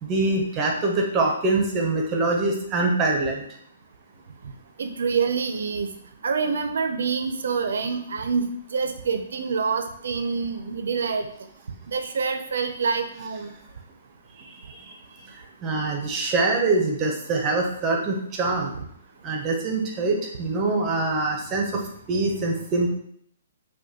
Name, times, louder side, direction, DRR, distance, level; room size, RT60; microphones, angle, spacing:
voice 1, 0.0-3.4 14.9-15.0 15.6-18.7 19.2-21.8 22.1-23.0, right 3 dB, 20° right, 1 dB, 0.6 m, -24 dB
voice 2, 4.8-5.9 6.2-8.4 8.7-11.3 11.9-13.5, right 5 dB, 70° right, 7 dB, 0.4 m, -26 dB
5.0 x 2.2 x 2.8 m, 0.65 s
hypercardioid pair, 165°, 0 cm